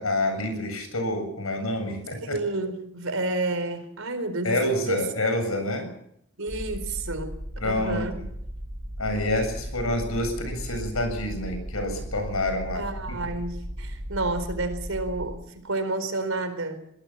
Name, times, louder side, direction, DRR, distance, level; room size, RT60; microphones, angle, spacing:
voice 1, 0.0-2.4 4.4-5.9 7.6-8.2 9.0-12.8 13.1-13.2, left 1 dB, 85° left, 7 dB, 7.7 m, -27 dB
voice 2, 2.2-4.6 4.9-5.1 6.4-7.3 7.6-8.2 12.7-16.8, right 2 dB, 75° right, 10 dB, 4.2 m, -30 dB
sound 1, 6.5-15.3, equal, 25° right, 7.2 m, -36 dB
23.5 x 18.0 x 7.4 m, 0.73 s
head